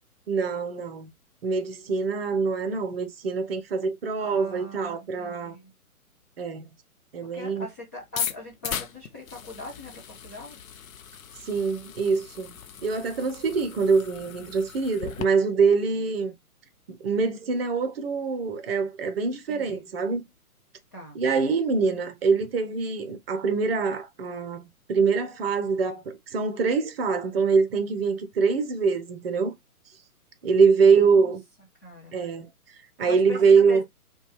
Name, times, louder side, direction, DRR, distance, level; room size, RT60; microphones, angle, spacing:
voice 1, 0.3-1.1 1.4-5.6 6.4-6.7 7.1-7.7 11.4-16.3 16.9-20.3 21.1-29.6 30.4-31.4 32.1-33.8, right 5 dB, 40° right, 0.8 m, -24 dB
voice 2, 4.2-5.7 7.3-10.6 19.5-19.8 20.9-21.2 30.8-31.3 31.8-32.2 33.1-33.8, left 1 dB, 10° left, 0.5 m, -42 dB
sound 1, 8.0-15.2, left 8 dB, 65° left, 0.7 m, -37 dB
5.2 x 2.4 x 3.1 m
figure-of-eight pair, 130°, 44 cm